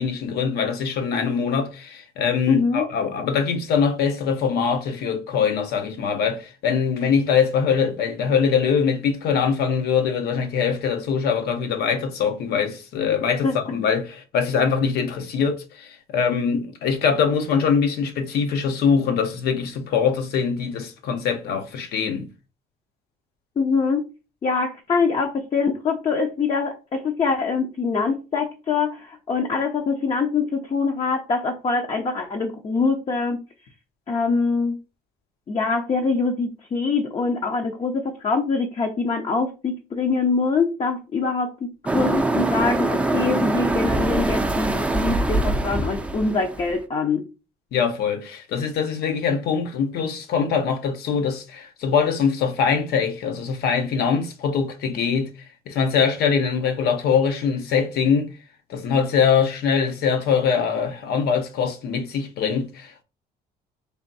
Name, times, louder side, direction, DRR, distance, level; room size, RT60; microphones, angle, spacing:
voice 1, 0.0-22.3 47.7-55.3 55.7-58.3 58.7-63.0, left 6 dB, 70° left, 0.8 m, -23 dB
voice 2, 2.5-2.9 13.4-13.6 23.6-24.0 24.4-33.4 34.1-34.8 35.5-47.2, left 4 dB, 35° left, 0.6 m, -24 dB
sound 1, 41.9-46.8, right 2 dB, 5° right, 0.5 m, -23 dB
3.5 x 2.5 x 4.0 m
cardioid pair, 110°, 17 cm